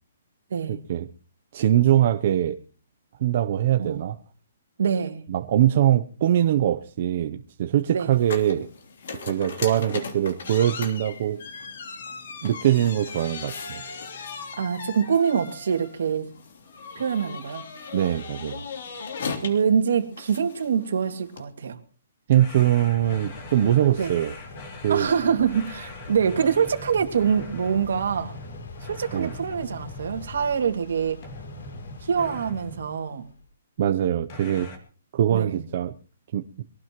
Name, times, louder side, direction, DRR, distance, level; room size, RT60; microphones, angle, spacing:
voice 1, 0.7-1.1 1.5-2.6 3.2-4.2 5.3-8.7 9.2-11.4 12.4-13.8 17.9-18.6 22.3-24.3 24.8-25.1 29.1-29.3 33.8-34.7 35.1-35.9 36.3-36.4, right 11 dB, 35° right, 7 dB, 0.6 m, -22 dB
voice 2, 4.8-5.2 7.9-8.1 14.6-16.3 17.0-17.7 19.4-21.8 24.0-24.2 24.9-28.3 28.8-31.2 32.0-33.3 35.3-35.7, right 7 dB, 65° right, 7 dB, 2.2 m, -25 dB
sound 1, 8.1-21.5, left 5 dB, 55° left, 3.2 m, -38 dB
sound 2, 22.3-30.8 31.2-32.9 34.3-34.8, left 2 dB, 25° left, 2.3 m, -41 dB
sound 3, 23.0-33.5, left 3 dB, 85° left, 3.1 m, -45 dB
23.5 x 17.5 x 3.0 m, 0.39 s
hypercardioid pair, 175°, 0 cm